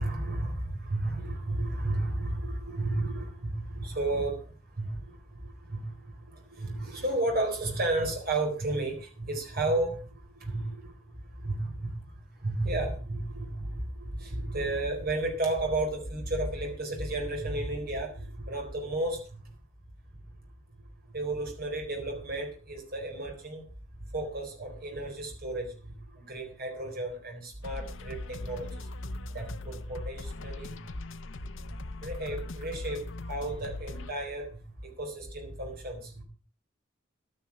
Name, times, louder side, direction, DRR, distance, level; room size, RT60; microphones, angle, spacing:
voice 1, 0.0-19.5 20.1-20.2 20.7-23.7 24.0-30.8 31.9-36.2, right 2 dB, 50° right, 2 dB, 4.2 m, -33 dB
sound 1, 27.6-34.1, left 2 dB, 70° left, 0.7 m, -40 dB
12.0 x 9.7 x 5.9 m, 0.38 s
head